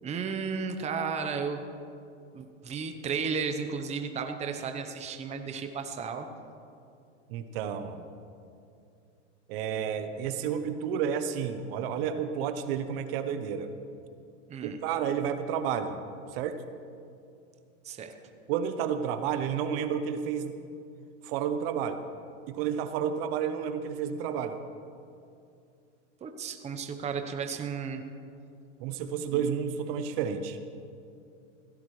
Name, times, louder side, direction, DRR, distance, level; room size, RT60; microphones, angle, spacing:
voice 1, 0.0-1.6 2.3-6.3 14.5-14.8 17.8-18.1 26.2-28.0 29.3-29.4, right 5 dB, 20° right, 6 dB, 0.9 m, -34 dB
voice 2, 7.3-8.1 9.5-13.7 14.6-16.0 16.3-16.6 18.5-20.6 21.2-22.0 22.5-24.6 28.8-30.6, right 8 dB, 50° right, 9 dB, 0.9 m, -31 dB
17.0 x 15.5 x 3.2 m, 2.5 s
hypercardioid pair, 130°, 36 cm